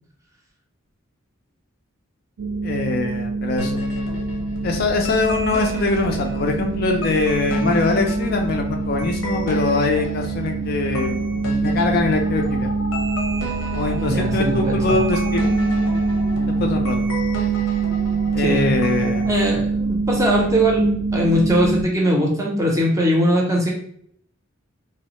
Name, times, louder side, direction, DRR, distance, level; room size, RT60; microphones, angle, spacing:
sound 1, 2.4-21.8, right 3 dB, 85° right, 0.4 m, -24 dB
voice 1, 2.6-3.8 4.6-11.2 11.6-12.7 13.7-15.4 16.5-17.1 18.3-19.3, left 3 dB, 50° left, 4 dB, 0.4 m, -23 dB
sound 2, 3.6-19.3, right 1 dB, 85° left, 0.8 m, -29 dB
voice 2, 14.1-15.0 18.4-18.7 19.2-23.7, equal, 15° right, -1 dB, 0.5 m, -20 dB
3.1 x 2.0 x 2.9 m, 0.65 s
head